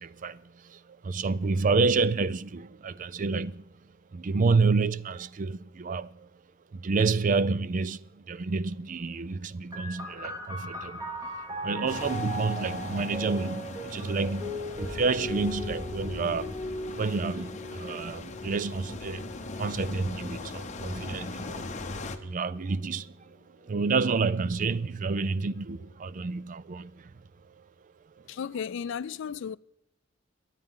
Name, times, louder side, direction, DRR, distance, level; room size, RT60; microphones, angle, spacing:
voice 1, 0.0-3.7 4.1-6.3 6.7-11.2 11.6-27.6 28.2-28.3, right 4 dB, 40° right, 0.4 m, -29 dB
sound 1, 9.7-22.9 23.8-24.6, equal, 20° right, 2.5 m, -39 dB
sound 2, 11.9-22.2, left 2 dB, 35° left, 1.0 m, -39 dB
voice 2, 28.3-29.6, left 7 dB, 65° left, 0.4 m, -34 dB
23.5 x 9.1 x 3.7 m
head